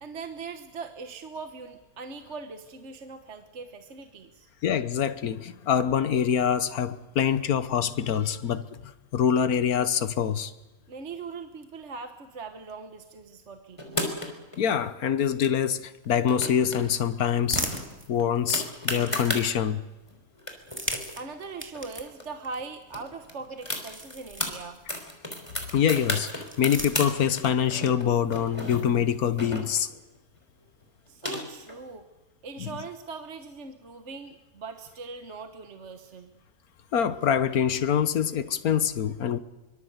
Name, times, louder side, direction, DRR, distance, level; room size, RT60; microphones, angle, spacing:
voice 1, 0.0-4.5 10.9-14.2 21.2-24.8 31.1-32.0 32.4-36.3, right 4 dB, 50° right, 1.5 m, -40 dB
voice 2, 4.6-8.7 9.1-10.5 14.6-17.8 18.1-19.8 25.7-29.9 32.6-32.7 36.9-39.4, left 8 dB, 70° left, 1.5 m, -25 dB
sound 1, 13.8-14.6 16.0-16.8 17.1-17.2 17.6-19.5 20.1-20.2 20.4-22.2 22.5-22.6 22.9-24.5 24.9-27.1 27.4-30.0 30.8-31.8, left 1 dB, 20° left, 3.8 m, -33 dB
sound 2, 17.2-19.7 20.5-25.1 26.1-27.6, right 1 dB, 5° right, 2.2 m, -39 dB
24.0 x 23.5 x 8.1 m
omnidirectional pair, 1.6 m